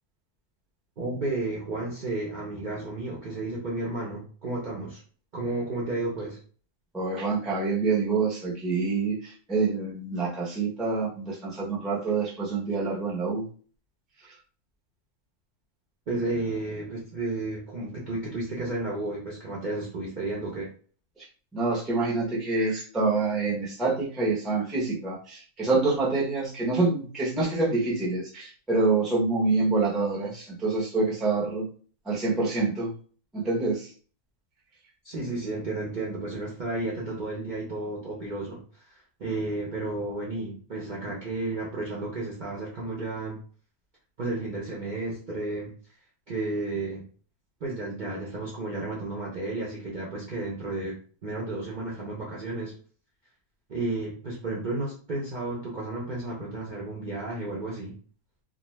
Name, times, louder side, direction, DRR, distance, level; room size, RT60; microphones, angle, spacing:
voice 1, 1.0-5.0 5.3-6.4 16.1-20.7 35.0-43.4 44.2-45.7 46.3-47.0 47.6-50.9 51.2-52.7 53.7-58.0, right 2 dB, 55° right, -5 dB, 0.5 m, -32 dB
voice 2, 6.9-13.5 21.2-21.3 21.5-31.6 32.0-32.9 33.3-33.9, right 3 dB, ahead, -4 dB, 0.4 m, -26 dB
2.4 x 2.2 x 3.1 m, 0.42 s
omnidirectional pair, 1.6 m